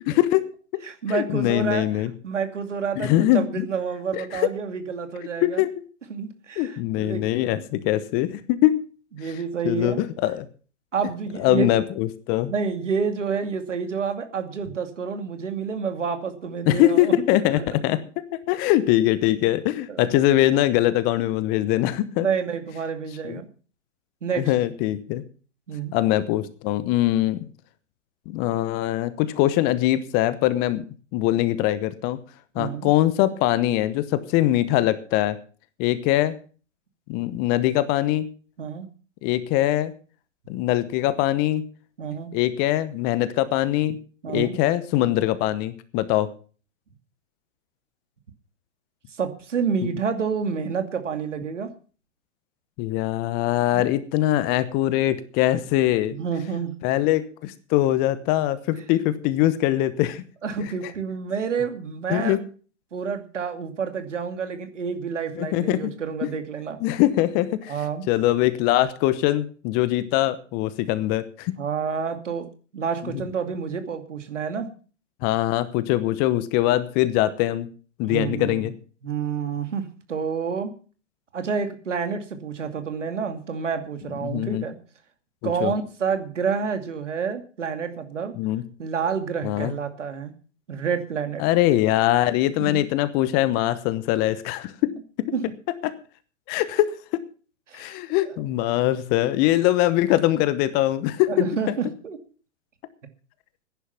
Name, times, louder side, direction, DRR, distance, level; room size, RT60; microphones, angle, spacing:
voice 1, 0.1-0.4 1.1-2.1 3.0-3.7 4.1-4.5 5.4-5.7 6.6-8.8 9.2-9.3 9.6-10.5 11.4-12.5 16.7-18.0 18.3-22.3 23.2-23.4 24.3-25.2 25.9-27.4 28.3-30.8 31.1-32.2 32.5-35.4 35.8-36.3 37.1-38.3 39.2-39.9 40.5-41.6 42.3-44.0 44.3-46.3 52.8-56.1 56.8-60.2 62.1-62.4 65.4-65.9 66.2-66.4 66.8-67.7 68.1-71.5 73.0-73.2 75.2-77.7 78.0-78.7 84.2-84.6 85.4-85.7 88.4-88.6 89.4-89.7 91.4-94.7 95.8-95.9 96.5-96.9 97.7-101.7, left 14 dB, 25° left, 15 dB, 0.9 m, -22 dB
voice 2, 0.9-5.6 6.1-7.6 9.1-10.0 10.9-11.7 12.5-17.7 19.9-20.2 22.2-23.5 24.2-24.5 25.7-25.9 32.6-32.9 38.6-38.9 42.0-42.3 44.2-44.6 49.2-51.7 53.7-53.9 56.1-56.7 60.4-62.4 62.9-66.8 67.7-68.1 71.6-74.7 78.1-78.7 79.0-80.7 81.3-84.8 85.4-88.3 88.8-90.3 90.7-91.4 92.6-92.8 95.3-95.4 97.7-97.9 101.3-102.2, right 6 dB, 70° right, 8 dB, 2.5 m, -29 dB
15.0 x 10.5 x 5.8 m, 0.39 s
figure-of-eight pair, 125°, 37 cm